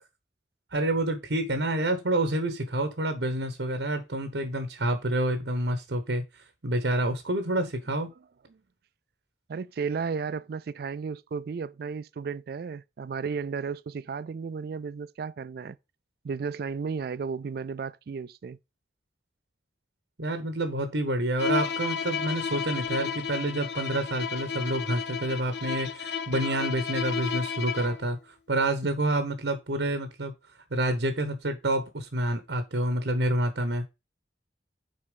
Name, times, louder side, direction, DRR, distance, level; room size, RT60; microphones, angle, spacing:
voice 1, 0.7-6.2 6.6-8.1 20.2-30.3 30.7-33.9, right 1 dB, 85° right, 1.0 m, -28 dB
voice 2, 9.5-15.8 16.2-18.6, right 5 dB, 60° right, 0.3 m, -34 dB
Bowed string instrument, 21.4-28.1, left 6 dB, 70° left, 0.6 m, -32 dB
6.7 x 4.3 x 5.1 m
head